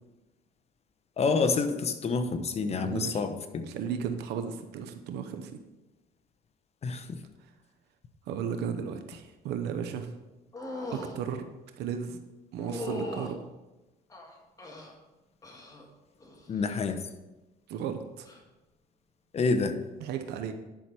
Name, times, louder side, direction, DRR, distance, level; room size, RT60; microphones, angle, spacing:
voice 1, 1.2-3.6 6.8-7.2 16.5-17.0 19.3-19.7, left 4 dB, 40° left, 8 dB, 1.0 m, -28 dB
voice 2, 2.7-3.2 3.7-5.5 8.3-10.1 10.9-11.4 11.8-12.2 12.5-13.4 17.7-18.3 20.0-20.5, right 7 dB, 80° right, 8 dB, 0.8 m, -34 dB
sound 1, 10.5-11.2 12.6-13.4 14.1-14.9 15.4-15.9 16.2-16.7 18.2-18.4, left 1 dB, 20° left, 1.8 m, -39 dB
11.0 x 5.9 x 4.7 m, 1.1 s
cardioid pair, 110°, 17 cm